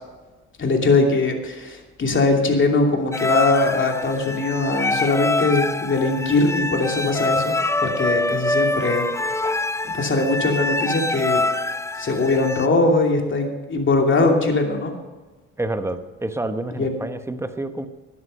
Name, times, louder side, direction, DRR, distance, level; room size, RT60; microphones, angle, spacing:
voice 1, 0.6-9.1 9.8-11.4 12.0-14.9 16.8-16.9, left 3 dB, 40° left, 2 dB, 2.8 m, -21 dB
sound 1, 3.1-12.7, left 2 dB, 10° left, 0.5 m, -25 dB
voice 2, 15.6-17.9, right 2 dB, 10° right, 8 dB, 1.1 m, -28 dB
13.0 x 9.9 x 5.6 m, 1.2 s
cardioid pair, 90°, 30 cm